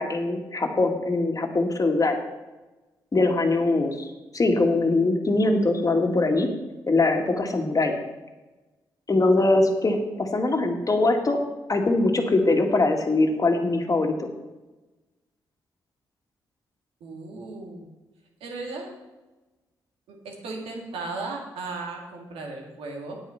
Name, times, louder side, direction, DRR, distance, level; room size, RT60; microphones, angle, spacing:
voice 1, 0.0-2.2 3.1-4.1 4.3-6.5 6.9-7.9 9.1-11.4 11.7-14.3, left 2 dB, 40° left, 4 dB, 1.9 m, -22 dB
voice 2, 17.0-17.9 18.4-18.9 20.1-23.2, right 3 dB, 80° right, 1 dB, 2.2 m, -36 dB
8.9 x 8.8 x 5.8 m, 1.1 s
supercardioid pair, 45°, 10 cm